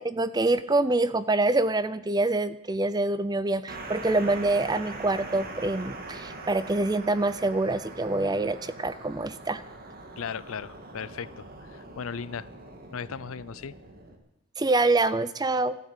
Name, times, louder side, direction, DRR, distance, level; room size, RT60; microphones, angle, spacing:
voice 1, 0.0-9.6 14.6-15.8, right 2 dB, 20° right, 15 dB, 0.5 m, -26 dB
sound 1, 3.7-14.2, right 2 dB, 45° right, 2.0 m, -42 dB
voice 2, 10.2-12.5 12.9-13.7, left 6 dB, 70° left, 19 dB, 0.5 m, -37 dB
13.5 x 12.5 x 8.4 m, 0.83 s
head